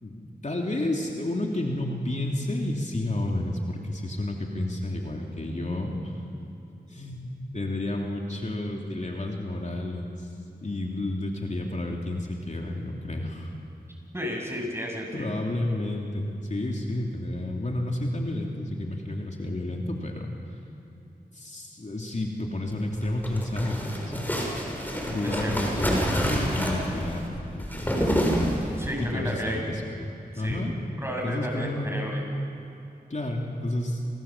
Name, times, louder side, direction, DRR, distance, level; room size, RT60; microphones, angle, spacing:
voice 1, 0.0-6.1 6.9-10.3 10.6-13.5 15.1-20.3 21.3-24.3 25.1-28.1 29.0-29.9 30.4-30.7 31.2-32.1 33.1-34.0, left 1 dB, 45° left, 0 dB, 3.1 m, -31 dB
voice 2, 14.1-15.4 25.2-25.8 28.8-29.7 30.3-30.6 31.0-32.2, equal, 15° right, 0 dB, 7.1 m, -33 dB
sound 1, 22.9-29.0, equal, 10° left, 6.7 m, -28 dB
29.5 x 26.5 x 7.4 m, 2.7 s
wide cardioid pair, 55°, 17 cm